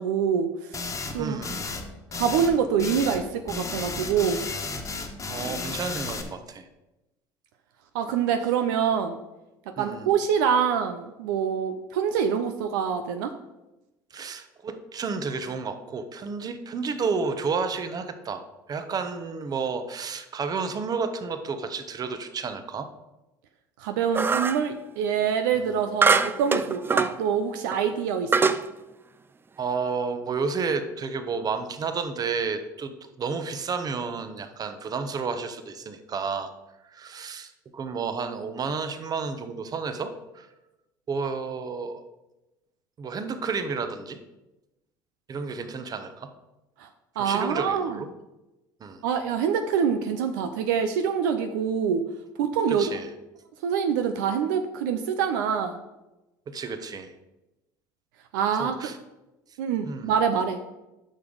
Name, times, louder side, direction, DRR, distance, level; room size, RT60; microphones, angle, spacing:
voice 1, 0.0-1.4 2.1-4.4 7.9-9.2 9.8-13.3 23.8-28.5 46.8-46.9 47.2-48.0 49.0-52.1 52.4-52.9 53.6-55.8 58.3-58.8 59.6-60.6, right 7 dB, 75° right, 7 dB, 0.6 m, -25 dB
sound 1, 0.7-1.2 1.4-1.8 2.1-3.2 3.5-6.2, left 3 dB, 30° left, 1.4 m, -33 dB
voice 2, 1.2-1.6 5.3-6.7 9.8-10.1 14.1-18.4 18.7-22.9 25.5-25.6 29.6-36.5 36.9-40.5 41.1-42.1 43.0-44.2 45.3-46.3 47.2-48.1 48.8-49.0 52.7-53.1 56.5-57.1 58.6-59.0 59.8-60.1, right 5 dB, 35° right, 9 dB, 1.0 m, -31 dB
sound 2, 24.1-24.7 26.0-27.2 27.7-27.8 28.3-28.6, right 4 dB, 20° right, 0.4 m, -22 dB
9.5 x 6.1 x 4.0 m, 1.0 s
hypercardioid pair, 70°, 11 cm